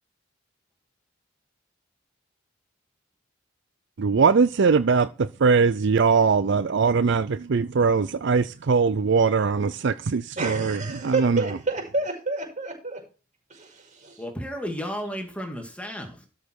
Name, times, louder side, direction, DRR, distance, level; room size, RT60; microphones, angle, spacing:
voice 1, 4.0-5.1 5.4-11.4, right 5 dB, 60° right, 0.5 m, -21 dB
voice 2, 10.4-13.0 13.5-14.2, right 3 dB, 40° right, 5.8 m, -29 dB
voice 3, 14.2-16.2, equal, 5° left, 2.3 m, -33 dB
13.0 x 6.6 x 4.7 m
head